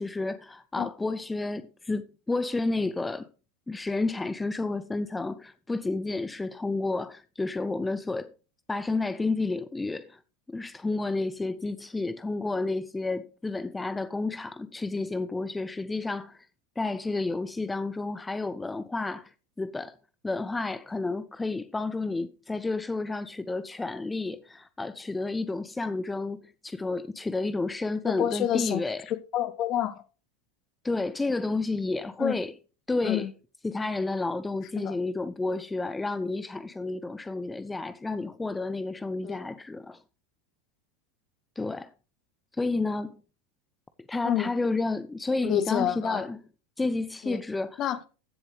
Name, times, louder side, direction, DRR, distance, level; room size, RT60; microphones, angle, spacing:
voice 1, 0.0-3.3 3.7-8.3 8.7-10.2 10.5-16.5 16.8-20.0 20.2-29.1 30.8-32.5 32.9-33.3 33.6-40.0 41.6-41.9 42.6-43.2 44.1-46.4 46.8-47.8, left 3 dB, 10° left, 0.5 m, -31 dB
voice 2, 28.0-28.8 29.1-30.0 32.2-32.3 33.0-33.3 34.8-34.9 39.2-39.4 44.2-44.5 45.4-46.2 47.2-47.4 47.8-48.1, left 11 dB, 45° left, 1.0 m, -28 dB
15.0 x 7.4 x 3.2 m
hypercardioid pair, 85°, 0 cm